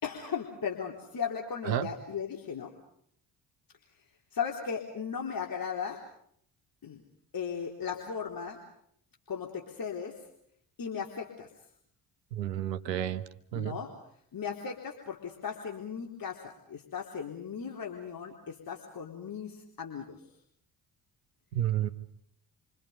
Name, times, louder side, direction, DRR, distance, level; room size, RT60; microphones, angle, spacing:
voice 1, 0.0-2.7 4.3-6.0 6.8-7.0 7.3-8.6 9.3-10.1 10.8-11.5 13.5-13.9 14.3-20.2, left 7 dB, 45° left, 1 dB, 4.1 m, -37 dB
voice 2, 12.3-13.2 13.5-13.8 21.5-21.9, right 11 dB, 85° right, 9 dB, 1.3 m, -30 dB
28.5 x 26.5 x 5.4 m, 0.68 s
hypercardioid pair, 45°, 48 cm